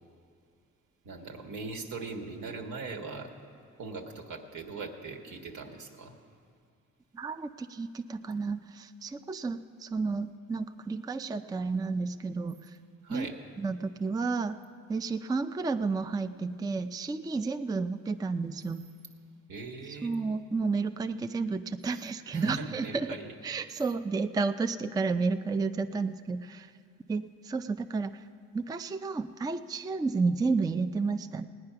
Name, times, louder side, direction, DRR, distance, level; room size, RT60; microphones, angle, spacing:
voice 1, 1.0-3.3 3.8-6.1 13.0-13.4 19.5-20.2 22.3-23.3, right 3 dB, 80° right, 2 dB, 1.6 m, -40 dB
voice 2, 7.1-12.6 13.1-13.3 13.6-14.6 14.9-18.8 20.0-23.2 23.4-26.7 27.1-28.2 28.5-31.5, right 4 dB, 15° right, 9 dB, 0.4 m, -31 dB
17.0 x 9.7 x 5.8 m, 2.2 s
cardioid pair, 90°, 30 cm